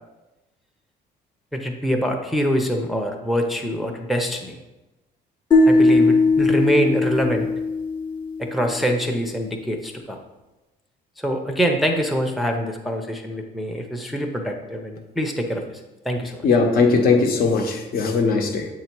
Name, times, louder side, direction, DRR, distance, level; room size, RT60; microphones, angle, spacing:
voice 1, 1.5-4.6 5.6-7.5 8.4-10.2 11.2-15.8 16.0-16.4, equal, ahead, 2 dB, 0.6 m, -24 dB
sound 1, 5.5-8.7, left 3 dB, 30° left, 0.8 m, -18 dB
voice 2, 16.4-18.7, left 4 dB, 60° left, 3 dB, 0.9 m, -19 dB
7.5 x 2.8 x 4.5 m, 1.0 s
cardioid pair, 110°, 17 cm